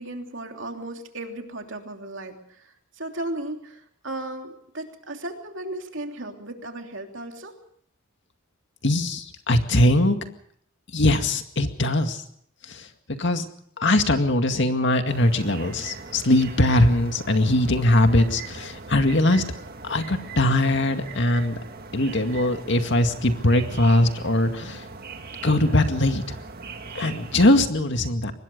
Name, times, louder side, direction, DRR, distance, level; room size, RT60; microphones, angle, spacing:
voice 1, 0.0-7.5, right 1 dB, 65° right, 4 dB, 3.1 m, -35 dB
voice 2, 8.8-10.2 10.9-12.2 12.7-13.4 13.8-19.4 19.8-21.6 21.9-24.9 25.4-26.4 26.9-28.3, left 1 dB, 60° left, 7 dB, 2.1 m, -21 dB
sound 1, 15.1-27.6, right 4 dB, 50° right, 1.9 m, -40 dB
24.0 x 20.5 x 5.3 m, 0.66 s
head